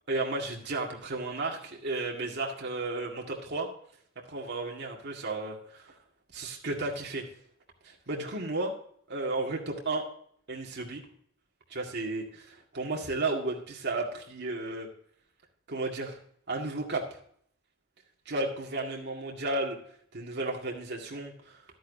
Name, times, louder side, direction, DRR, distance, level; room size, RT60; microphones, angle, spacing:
voice 1, 0.1-3.7 4.3-5.9 6.3-7.2 7.8-8.7 9.1-10.0 10.5-11.0 11.7-14.9 15.7-16.2 16.5-17.0 18.3-19.8 20.1-21.6, right 2 dB, 55° right, -1 dB, 1.9 m, -33 dB
12.0 x 10.0 x 2.7 m, 0.62 s
head